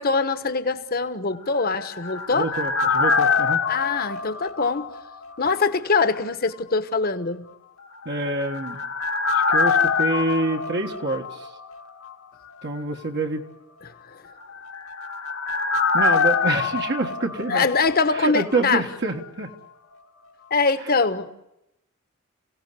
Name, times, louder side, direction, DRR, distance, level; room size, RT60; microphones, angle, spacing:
voice 1, 0.0-2.5 3.7-4.9 5.4-7.4 13.8-14.3 17.5-18.8 20.5-21.3, left 4 dB, 45° left, 10 dB, 1.3 m, -23 dB
sound 1, 1.5-5.3 5.6-5.7 8.1-11.8 12.0-12.1 14.4-18.3 18.5-18.6, left 5 dB, 80° left, 2.0 m, -24 dB
voice 2, 2.3-3.6 8.0-8.8 9.3-11.5 12.6-13.4 15.9-17.7 18.1-19.5, right 2 dB, 55° right, 3 dB, 1.6 m, -26 dB
28.5 x 17.5 x 8.2 m, 0.88 s
head